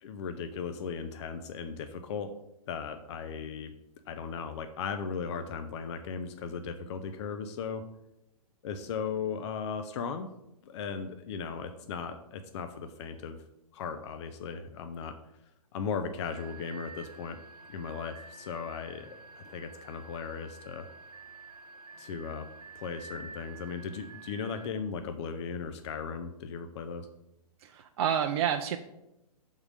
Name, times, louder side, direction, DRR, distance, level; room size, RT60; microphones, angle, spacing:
voice 1, 0.0-2.3 2.7-3.7 4.1-7.8 8.6-10.3 10.7-13.4 13.7-15.1 15.7-17.4 17.7-19.1 19.4-20.9 22.0-22.5 22.8-27.1, left 6 dB, 45° left, 8 dB, 0.5 m, -37 dB
sound 1, 16.2-24.7, right 4 dB, 80° right, 0.8 m, -49 dB
voice 2, 27.6-28.8, right 9 dB, 45° right, 6 dB, 0.4 m, -29 dB
6.2 x 3.7 x 4.9 m, 0.88 s
hypercardioid pair, 125°, 20 cm